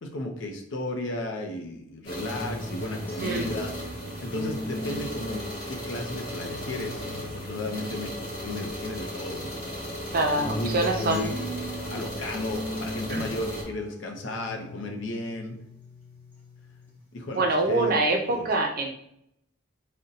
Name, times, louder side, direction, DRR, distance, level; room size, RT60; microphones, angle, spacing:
voice 1, 0.0-3.7 4.2-10.0 10.5-11.4 11.9-15.6 17.1-17.9 18.3-18.5, left 1 dB, 65° left, 3 dB, 0.5 m, -34 dB
sound 1, 2.0-13.6, equal, 40° left, 1.2 m, -36 dB
sound 2, 2.3-9.0 9.3-17.0 17.3-18.3, equal, 10° left, 0.7 m, -39 dB
voice 2, 10.1-11.3 13.1-13.3 17.4-18.9, right 2 dB, 45° right, 2 dB, 0.5 m, -25 dB
2.6 x 2.1 x 3.8 m, 0.74 s
head